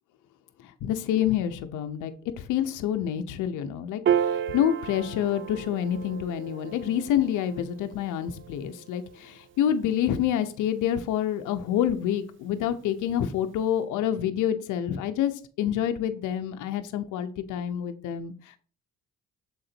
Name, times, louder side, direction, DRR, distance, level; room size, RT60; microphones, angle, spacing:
voice 1, 0.6-18.6, left 10 dB, 90° left, 8 dB, 0.7 m, -28 dB
Piano, 4.1-10.7, right 9 dB, 40° right, 0.4 m, -33 dB
7.1 x 3.9 x 4.3 m, 0.38 s
cardioid pair, 90°, 30 cm